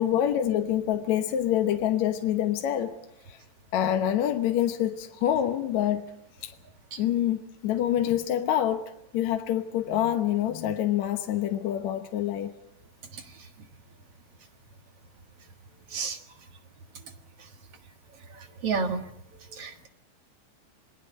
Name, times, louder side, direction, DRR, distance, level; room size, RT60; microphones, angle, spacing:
voice 1, 0.0-3.0 3.3-3.4 3.7-6.1 6.4-6.5 7.0-8.8 9.1-12.5, left 11 dB, 75° left, 2.3 m, -26 dB
voice 2, 13.1-13.5 15.9-16.2 18.3-19.0 19.5-19.9, right 5 dB, 55° right, 2.5 m, -32 dB
27.5 x 20.5 x 5.5 m
omnidirectional pair, 3.3 m